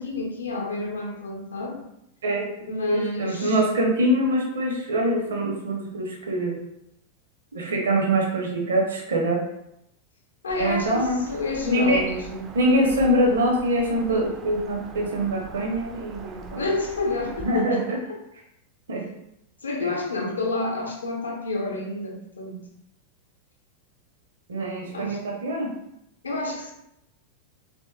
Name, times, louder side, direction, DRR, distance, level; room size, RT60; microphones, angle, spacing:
voice 1, 0.0-1.8 2.7-3.6 10.4-12.5 16.5-18.2 19.6-22.6 24.9-25.2 26.2-26.7, left 2 dB, 70° left, 0 dB, 0.6 m, -29 dB
voice 2, 2.9-6.6 7.5-9.4 10.6-11.3 11.6-12.0 12.5-16.6 17.4-18.0 18.9-19.1 19.8-19.9 24.5-25.7, right 1 dB, 65° right, 0 dB, 0.7 m, -24 dB
Bird vocalization bird call bird song, 10.5-17.6, right 4 dB, 30° right, 0.3 m, -42 dB
3.0 x 2.8 x 2.2 m, 0.80 s
figure-of-eight pair, 90°, 0 cm